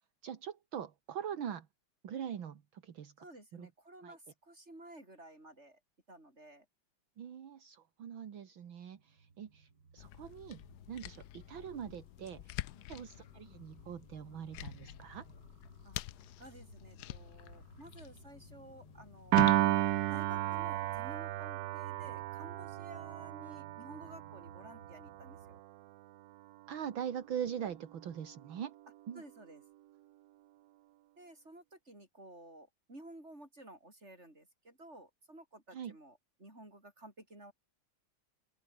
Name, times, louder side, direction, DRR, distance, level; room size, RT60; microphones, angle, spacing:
voice 1, 0.2-1.7 2.0-3.3 3.5-3.7 4.0-4.2 7.2-10.6 10.9-12.5 12.9-15.3 26.7-28.7 29.1-29.2 35.7-36.0, right 9 dB, 70° right, 2.3 m, -42 dB
voice 2, 3.2-5.8 6.1-6.6 12.7-13.1 15.8-16.0 16.4-19.7 20.1-25.6 29.1-29.6 31.2-37.5, right 1 dB, 30° right, 8.4 m, -54 dB
sound 1, 8.9-25.6, right 5 dB, 55° right, 3.5 m, -60 dB
sound 2, 10.0-21.2, left 14 dB, 75° left, 0.9 m, -47 dB
Piano, 19.3-25.7, right 15 dB, 85° right, 0.8 m, -33 dB
open air
omnidirectional pair, 2.3 m